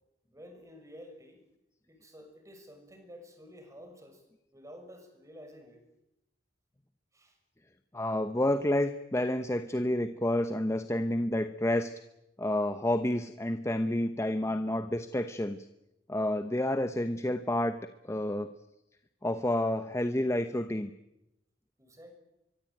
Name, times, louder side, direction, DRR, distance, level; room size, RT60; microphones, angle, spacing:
voice 1, 0.3-1.4 1.9-4.2 4.5-5.8 7.1-7.4 21.8-22.1, equal, 20° right, 6 dB, 6.2 m, -51 dB
voice 2, 7.9-11.9 12.4-15.6 16.1-17.8 18.0-18.5 19.2-20.9, left 1 dB, 15° left, 9 dB, 1.0 m, -29 dB
25.0 x 23.5 x 9.1 m, 0.89 s
head